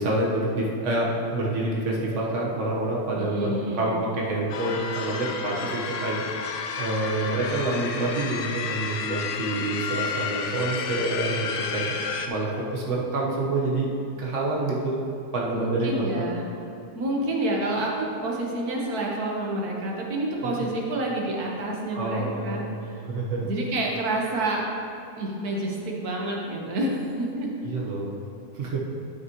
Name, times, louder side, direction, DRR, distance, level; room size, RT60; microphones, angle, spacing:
voice 1, 0.0-6.4 6.7-12.0 12.2-13.9 14.2-15.0 15.3-16.3 20.4-20.7 21.9-23.6 27.6-28.1 28.5-28.8, right 2 dB, 50° right, -3 dB, 1.5 m, -27 dB
voice 2, 3.2-3.9 15.5-16.5 16.9-22.7 23.4-24.6 25.2-27.5, right 1 dB, 65° right, -2 dB, 1.7 m, -28 dB
sound 1, 4.5-12.3, left 5 dB, 75° left, 1.1 m, -31 dB
12.0 x 6.3 x 3.1 m, 2.9 s
omnidirectional pair, 1.8 m